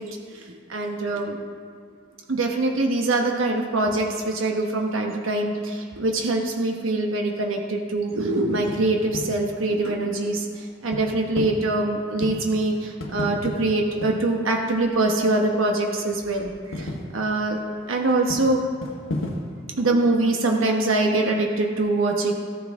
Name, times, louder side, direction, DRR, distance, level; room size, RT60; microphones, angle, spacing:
voice 1, 0.0-1.4 2.3-17.6 17.9-18.7 19.7-22.3, right 2 dB, 85° right, 1 dB, 1.0 m, -24 dB
sound 1, 8.5-15.9 16.2-19.6, left 1 dB, 75° left, 1.4 m, -35 dB
14.5 x 9.4 x 3.6 m, 2.2 s
head